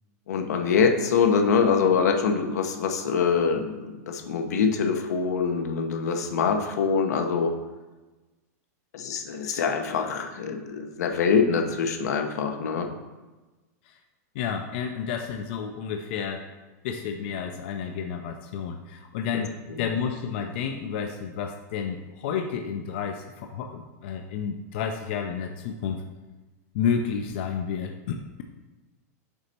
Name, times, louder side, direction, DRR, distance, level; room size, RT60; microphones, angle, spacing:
voice 1, 0.3-7.5 8.9-12.9, left 5 dB, 75° left, 5 dB, 0.9 m, -24 dB
voice 2, 14.4-16.5 16.8-19.5 19.8-26.0 26.7-28.4, left 7 dB, 40° left, 5 dB, 0.4 m, -31 dB
6.7 x 4.0 x 4.3 m, 1.2 s
supercardioid pair, 175°, 9 cm